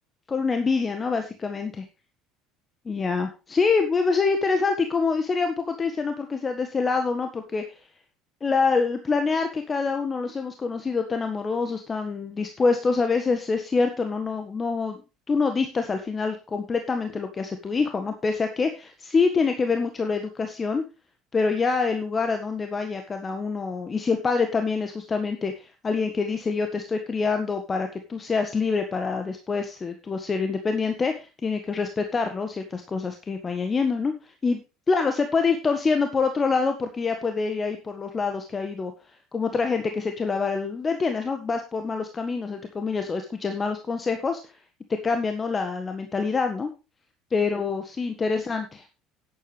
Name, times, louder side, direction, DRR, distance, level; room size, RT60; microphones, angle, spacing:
voice 1, 0.3-1.7 2.8-7.6 8.4-15.0 15.3-20.8 21.3-34.6 34.9-38.9 39.3-44.5 45.0-46.7 47.3-48.8, left 4 dB, 30° left, 6 dB, 1.6 m, -26 dB
11.0 x 10.5 x 3.3 m, 0.29 s
hypercardioid pair, 65°, 0 cm